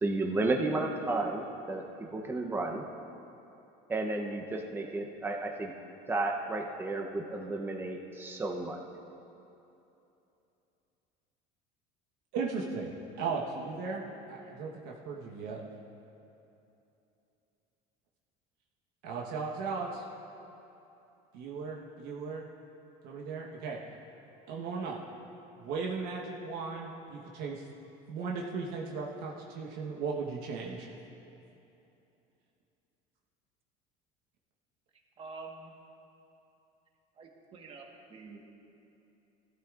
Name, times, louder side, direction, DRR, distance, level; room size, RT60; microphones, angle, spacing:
voice 1, 0.0-2.8 3.9-5.7 6.1-8.8, right 2 dB, 15° right, 1 dB, 0.8 m, -32 dB
voice 2, 12.3-12.9 13.2-14.0 14.3-15.6 19.0-20.1 21.3-22.4 23.0-23.8 24.5-25.0 25.6-27.6 28.1-30.9, right 4 dB, 75° right, -2 dB, 1.2 m, -36 dB
voice 3, 35.2-35.7 37.1-38.4, right 4 dB, 35° right, 1 dB, 1.4 m, -47 dB
17.0 x 12.5 x 2.5 m, 2.9 s
cardioid pair, 135°, 16 cm